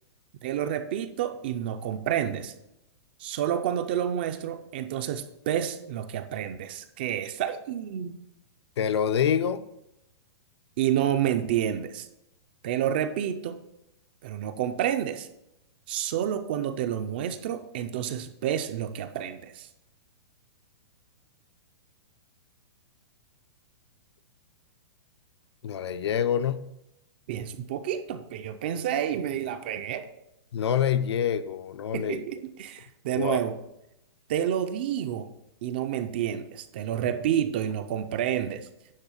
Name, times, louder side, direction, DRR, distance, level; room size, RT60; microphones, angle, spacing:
voice 1, 0.4-2.5 3.2-8.2 10.8-12.1 12.6-13.6 14.2-15.3 15.9-19.7 27.3-30.1 31.9-33.6 34.3-35.3 35.6-38.7, right 10 dB, 20° right, 9 dB, 0.4 m, -29 dB
voice 2, 8.8-9.6 25.6-26.7 30.5-32.2 33.2-33.4, left 8 dB, 70° left, 12 dB, 0.6 m, -26 dB
9.9 x 3.6 x 7.2 m, 0.84 s
hypercardioid pair, 180°, 14 cm